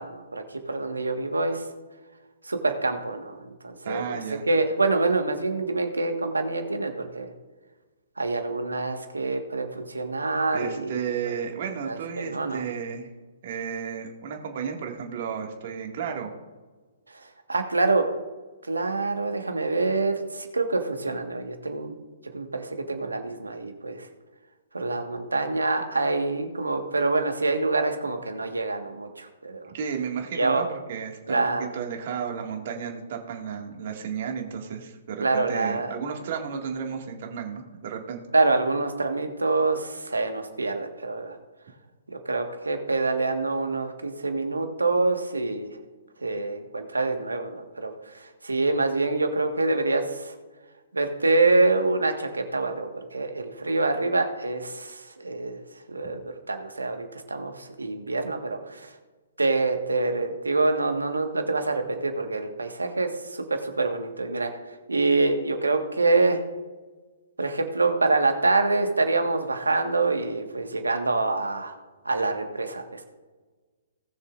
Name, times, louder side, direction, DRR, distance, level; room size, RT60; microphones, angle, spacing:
voice 1, 0.0-1.6 2.4-7.3 8.2-11.0 11.3-11.4 11.8-12.6 17.5-18.0 18.7-22.0 22.3-24.1 24.7-29.7 30.3-30.6 31.3-31.7 35.2-36.0 38.3-41.4 42.2-45.7 46.2-50.3 50.9-55.6 55.9-58.9 59.4-66.4 67.4-71.7 72.0-73.1, right 3 dB, 85° right, 5 dB, 1.6 m, -26 dB
voice 2, 3.9-4.4 10.5-13.1 13.4-16.3 29.7-38.2, right 7 dB, 50° right, 2 dB, 2.1 m, -33 dB
19.0 x 6.8 x 2.6 m, 1.3 s
figure-of-eight pair, 125°, 0 cm